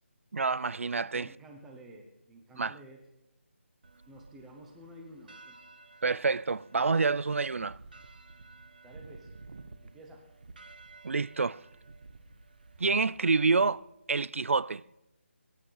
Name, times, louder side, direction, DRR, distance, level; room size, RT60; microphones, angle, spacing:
voice 1, 0.3-1.3 2.6-2.7 6.0-7.8 11.0-11.6 12.8-14.8, right 4 dB, 75° right, 0.4 m, -28 dB
voice 2, 1.1-3.0 4.1-5.6 5.9-6.0 8.8-9.3 9.8-10.3, right 1 dB, 5° right, 0.6 m, -51 dB
sound 1, 3.8-13.8, right 3 dB, 40° right, 1.0 m, -53 dB
22.5 x 9.3 x 5.6 m
hypercardioid pair, 180°, 7 cm